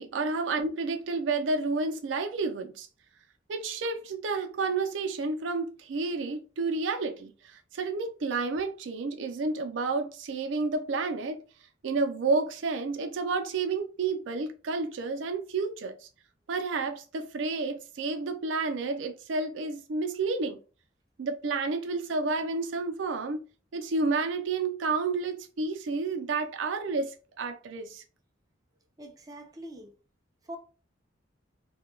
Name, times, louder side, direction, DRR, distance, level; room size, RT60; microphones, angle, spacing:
voice 1, 0.0-2.9 3.5-11.4 11.8-16.0 16.5-20.6 21.2-23.4 23.7-28.0, right 3 dB, 90° right, 0.4 m, -30 dB
voice 2, 29.0-29.9 30.5-30.6, equal, 20° right, 0.4 m, -43 dB
2.2 x 2.2 x 3.0 m
head